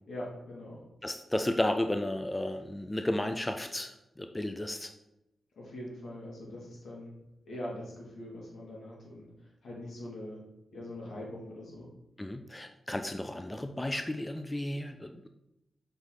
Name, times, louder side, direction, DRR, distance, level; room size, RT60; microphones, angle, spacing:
voice 1, 0.1-0.8 5.5-7.1 7.5-10.4 10.7-11.9, left 1 dB, 75° left, -3 dB, 2.4 m, -42 dB
voice 2, 1.0-4.9 12.2-15.3, left 1 dB, 20° left, 7 dB, 0.6 m, -33 dB
6.4 x 4.1 x 4.8 m, 0.90 s
supercardioid pair, 45°, 0 cm